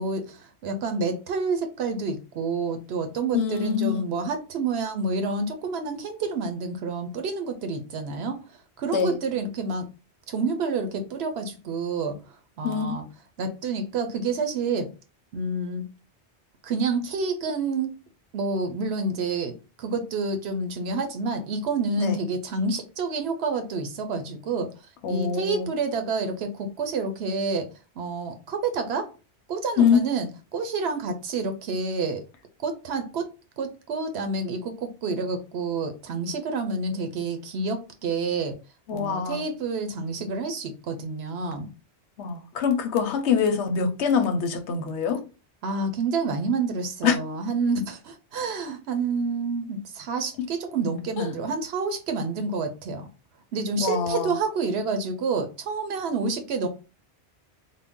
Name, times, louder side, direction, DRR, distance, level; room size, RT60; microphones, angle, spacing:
voice 1, 0.0-8.4 8.8-9.9 10.3-13.0 13.4-14.9 15.3-15.8 16.6-17.9 18.3-24.7 25.1-27.7 28.0-29.1 29.5-32.2 32.6-33.3 33.6-38.6 38.9-41.7 45.6-53.1 53.5-56.7, right 4 dB, 75° right, 0.8 m, -28 dB
voice 2, 3.3-4.0 8.9-9.2 12.6-13.0 22.0-22.2 25.0-25.7 29.8-30.0 38.9-39.4 42.2-45.2 47.0-47.2 50.4-50.5 51.2-51.3 53.8-54.3, left 6 dB, 85° left, 1.0 m, -24 dB
3.7 x 2.1 x 3.6 m
omnidirectional pair, 1.1 m